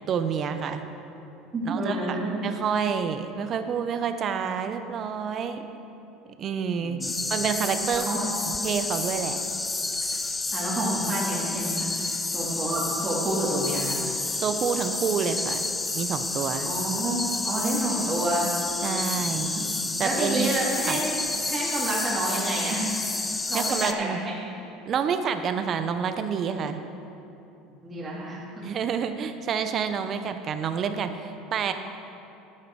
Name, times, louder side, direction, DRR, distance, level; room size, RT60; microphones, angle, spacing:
voice 1, 0.1-0.8 1.6-5.7 6.4-7.0 7.3-8.1 8.5-9.4 14.4-15.7 15.9-16.7 18.8-19.5 20.0-21.0 23.5-24.2 24.9-26.8 28.6-31.7, right 7 dB, 45° right, 8 dB, 0.7 m, -28 dB
voice 2, 1.5-2.3 6.8-7.2 7.9-8.3 10.5-14.0 16.6-18.5 19.2-19.7 20.0-21.0 21.4-23.0 23.5-24.4 27.8-28.6, right 1 dB, 25° right, -6 dB, 2.6 m, -29 dB
sound 1, 7.0-23.9, left 3 dB, 15° left, 0.6 m, -30 dB
11.0 x 9.2 x 4.6 m, 2.9 s
supercardioid pair, 105°, 0 cm